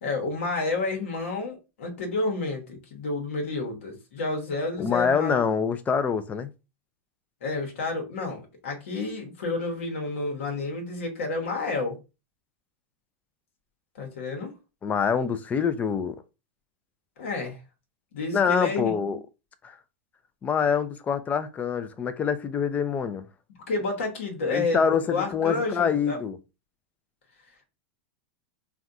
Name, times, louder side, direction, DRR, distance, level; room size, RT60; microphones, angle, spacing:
voice 1, 0.0-5.4 7.4-12.0 14.0-14.5 17.2-17.6 18.1-19.2 23.7-26.2, left 3 dB, 80° left, 1.1 m, -30 dB
voice 2, 4.8-6.5 14.8-16.2 18.3-19.2 19.6-19.8 20.4-23.2 24.4-26.4, left 6 dB, 20° left, 0.4 m, -25 dB
3.4 x 2.3 x 2.5 m
hypercardioid pair, 115°, 7 cm